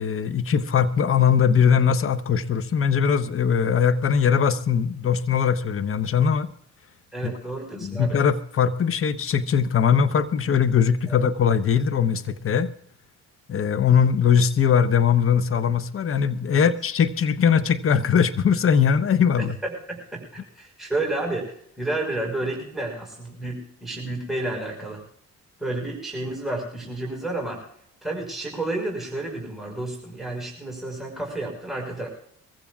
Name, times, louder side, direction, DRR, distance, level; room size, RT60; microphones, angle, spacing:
voice 1, 0.0-6.5 7.2-7.3 7.8-12.7 13.5-19.5, left 7 dB, 40° left, 13 dB, 0.9 m, -21 dB
voice 2, 7.1-8.2 11.1-11.2 16.5-16.7 19.4-25.0 25.6-27.6 28.0-32.1, right 2 dB, ahead, -1 dB, 5.0 m, -31 dB
23.5 x 15.5 x 2.4 m, 0.68 s
supercardioid pair, 60°, 33 cm